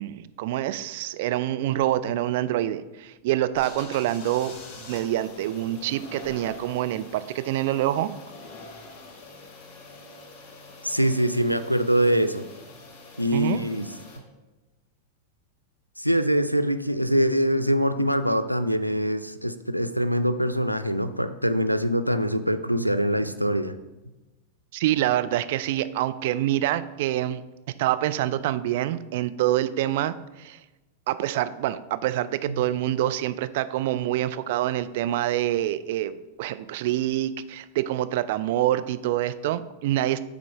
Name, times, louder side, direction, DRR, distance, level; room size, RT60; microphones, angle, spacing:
voice 1, 0.0-8.1 13.3-13.6 24.7-27.4 27.8-30.6 31.1-40.2, right 13 dB, 50° right, 12 dB, 0.3 m, -26 dB
sound 1, 3.5-14.2, left 3 dB, 40° left, 1.9 m, -45 dB
voice 2, 10.8-12.4 13.2-13.9 16.0-23.8 32.5-32.6, equal, 90° left, 10 dB, 0.3 m, -24 dB
6.8 x 3.8 x 4.7 m, 1.1 s
figure-of-eight pair, 90°, 0 cm